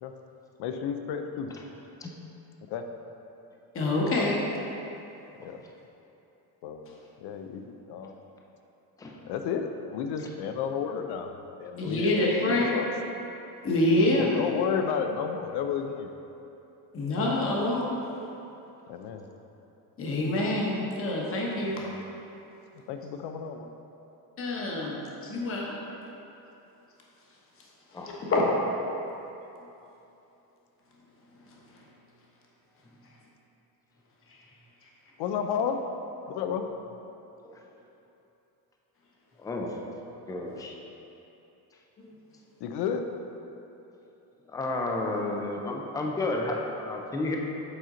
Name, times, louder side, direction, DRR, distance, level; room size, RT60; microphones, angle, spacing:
voice 1, 0.6-1.5 2.7-2.9 5.4-5.6 6.6-6.8 7.2-8.2 9.3-11.3 11.6-12.9 14.2-16.1 18.9-19.3 21.8-21.9 22.9-23.7 35.2-35.8 36.3-36.6 42.6-43.0, left 7 dB, 70° left, 6 dB, 0.6 m, -32 dB
voice 2, 3.7-4.4 11.8-12.7 13.6-14.3 16.9-17.8 20.0-21.8 24.4-25.0 25.2-25.8 28.0-28.4 42.0-42.1, left 2 dB, 30° left, -3 dB, 1.1 m, -26 dB
voice 3, 39.4-39.8 40.3-40.8 44.5-47.4, left 2 dB, 10° left, 0 dB, 0.4 m, -32 dB
7.9 x 4.3 x 3.8 m, 2.9 s
cardioid pair, 150°, 42 cm